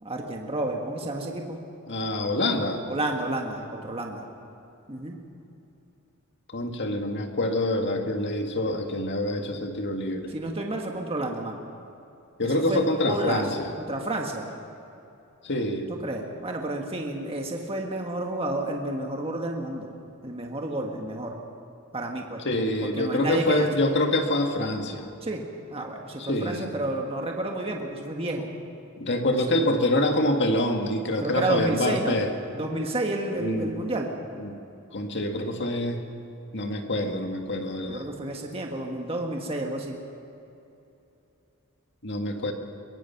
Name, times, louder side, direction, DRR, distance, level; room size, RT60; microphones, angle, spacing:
voice 1, 0.0-1.6 2.9-4.3 4.9-5.2 10.3-11.6 12.4-13.4 13.9-14.5 15.9-19.9 20.2-21.3 21.9-22.4 22.8-23.7 25.2-25.4 25.7-28.5 29.5-29.7 31.2-32.2 32.5-34.1 37.9-40.0, right 2 dB, 25° right, 1 dB, 1.6 m, -30 dB
voice 2, 1.9-2.8 6.5-10.3 12.4-13.7 15.4-15.9 22.5-25.1 26.2-26.7 29.0-32.3 33.4-33.7 34.4-34.6 34.9-36.0 36.5-38.1 42.0-42.5, left 1 dB, 55° left, 4 dB, 2.0 m, -26 dB
22.5 x 22.0 x 5.9 m, 2.8 s
head